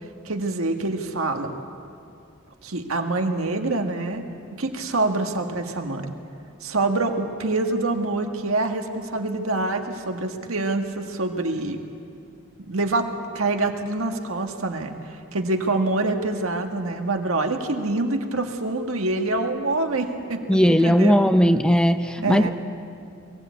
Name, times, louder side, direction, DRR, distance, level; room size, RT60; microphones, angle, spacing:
voice 1, 0.2-1.5 2.6-4.2 4.5-6.1 6.6-11.8 12.6-14.9 15.3-21.3 22.2-22.5, right 2 dB, 85° right, 4 dB, 1.7 m, -25 dB
voice 2, 20.5-22.5, equal, 5° left, 8 dB, 0.5 m, -18 dB
22.5 x 16.0 x 8.3 m, 2.4 s
head